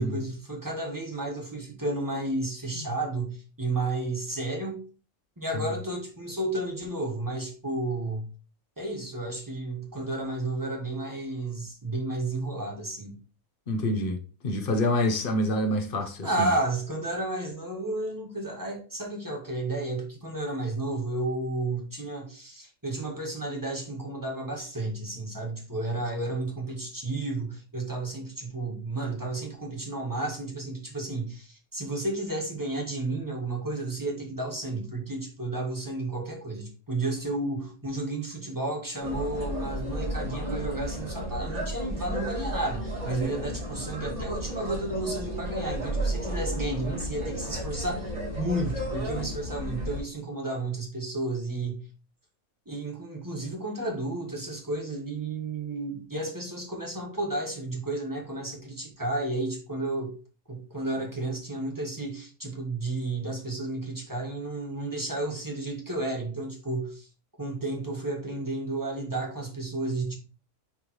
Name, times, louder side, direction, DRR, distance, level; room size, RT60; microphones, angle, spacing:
voice 1, 0.0-4.8 5.4-8.2 8.8-13.2 16.2-48.1 48.4-51.9 52.6-60.2 60.5-67.1 67.4-70.2, right 2 dB, 15° right, 1.6 m, -32 dB
voice 2, 13.7-16.5, left 1 dB, 45° left, 1.0 m, -27 dB
sound 1, 39.0-50.0, right 1 dB, 85° right, 3.3 m, -33 dB
9.9 x 3.6 x 3.1 m
omnidirectional pair, 1.5 m